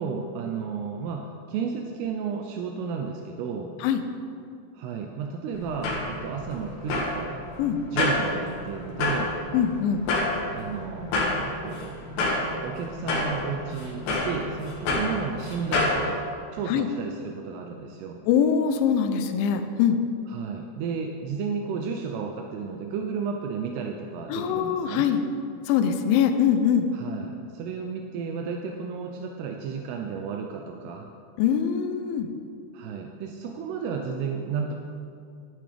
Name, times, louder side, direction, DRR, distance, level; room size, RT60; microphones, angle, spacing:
voice 1, 0.0-3.7 4.7-7.4 7.9-9.3 10.5-12.0 12.6-16.2 16.5-18.2 20.3-25.1 26.9-31.1 32.7-34.7, right 6 dB, 85° right, 2 dB, 2.4 m, -33 dB
sound 1, 5.5-16.0, left 2 dB, 70° left, 3.8 m, -29 dB
voice 2, 9.5-10.0 16.7-16.9 18.3-20.0 24.3-25.2 25.7-26.9 31.4-32.3, left 8 dB, 85° left, 7 dB, 3.1 m, -23 dB
11.5 x 11.5 x 3.4 m, 2.4 s
omnidirectional pair, 5.3 m